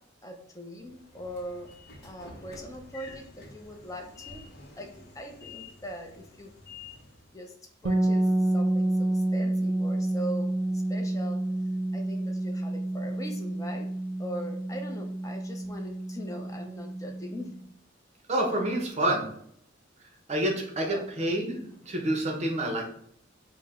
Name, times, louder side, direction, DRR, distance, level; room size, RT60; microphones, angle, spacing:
voice 1, 0.0-4.5 4.8-6.5 7.3-7.6 7.8-11.5 11.9-13.9 14.2-17.6 20.8-21.3, equal, 15° left, 3 dB, 0.5 m, -41 dB
Train / Sliding door, 0.8-7.3, left 3 dB, 55° left, 0.8 m, -49 dB
sound 1, 7.8-17.6, right 1 dB, 70° right, 0.5 m, -29 dB
voice 2, 18.3-19.3 20.3-22.9, right 1 dB, 35° right, 1 dB, 0.7 m, -28 dB
4.8 x 2.1 x 3.5 m, 0.67 s
head